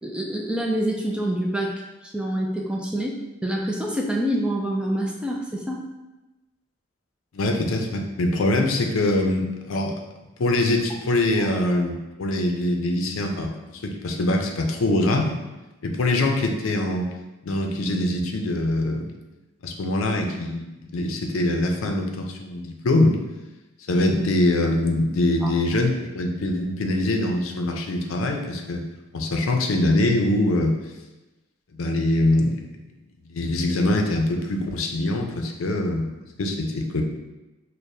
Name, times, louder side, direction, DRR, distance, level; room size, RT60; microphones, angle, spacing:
voice 1, 0.0-1.7 2.0-5.8 11.4-11.5 25.4-25.5, right 1 dB, 5° right, -1 dB, 0.3 m, -26 dB
voice 2, 7.3-10.0 10.4-15.4 15.8-17.1 17.4-19.1 19.6-23.2 23.9-28.9 29.1-30.8 31.7-32.6 33.2-37.0, left 1 dB, 90° left, 3 dB, 0.5 m, -23 dB
6.4 x 2.2 x 2.6 m, 1.1 s
head